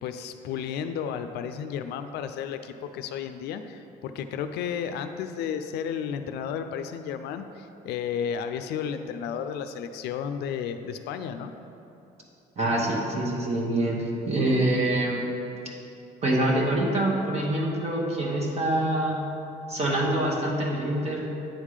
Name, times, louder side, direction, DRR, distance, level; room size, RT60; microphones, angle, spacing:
voice 1, 0.0-11.5, left 7 dB, 80° left, 8 dB, 0.4 m, -33 dB
voice 2, 12.6-15.3 16.2-19.3 19.7-21.3, right 1 dB, 40° right, -2 dB, 1.1 m, -25 dB
8.9 x 3.6 x 4.9 m, 2.8 s
cardioid pair, 110°, 17 cm